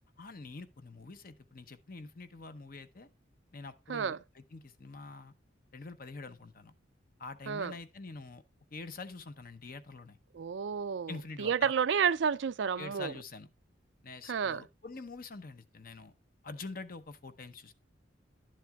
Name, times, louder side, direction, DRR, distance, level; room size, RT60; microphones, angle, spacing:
voice 1, 0.2-3.1 3.5-5.3 5.7-6.7 7.2-8.4 8.7-10.2 11.1-11.7 12.8-13.5 14.0-16.1 16.4-17.7, left 3 dB, 50° left, 0.8 m, -45 dB
voice 2, 10.3-13.1 14.3-14.6, right 7 dB, 70° right, 0.4 m, -31 dB
11.5 x 7.6 x 2.3 m
head